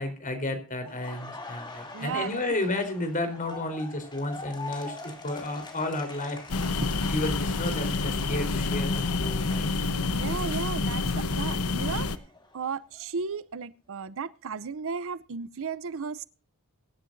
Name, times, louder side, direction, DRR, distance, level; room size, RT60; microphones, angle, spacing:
voice 1, 0.0-6.4 7.1-9.7, left 2 dB, 35° left, 4.1 m, -32 dB
Laughter, 0.8-10.7 11.0-13.0, left 3 dB, 20° left, 2.9 m, -44 dB
voice 2, 1.9-2.4 10.1-12.1 12.5-16.2, right 5 dB, 65° right, 0.6 m, -34 dB
sound 1, 6.5-12.2, left 3 dB, 70° left, 1.0 m, -28 dB
23.5 x 10.5 x 2.6 m
head